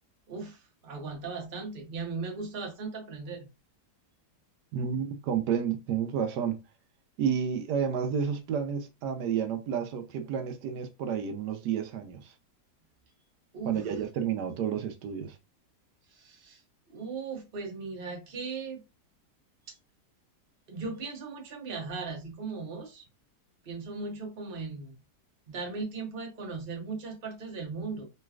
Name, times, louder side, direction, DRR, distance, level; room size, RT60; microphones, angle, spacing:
voice 1, 0.3-3.5 13.5-14.0 16.1-16.6 16.9-18.8 19.7-19.8 20.7-23.0 23.6-25.0 25.5-28.1, right 4 dB, 40° right, 1.0 m, -38 dB
voice 2, 4.7-6.6 7.2-12.3 13.6-15.4, right 7 dB, 80° right, 1.1 m, -30 dB
3.2 x 3.1 x 2.3 m
omnidirectional pair, 1.8 m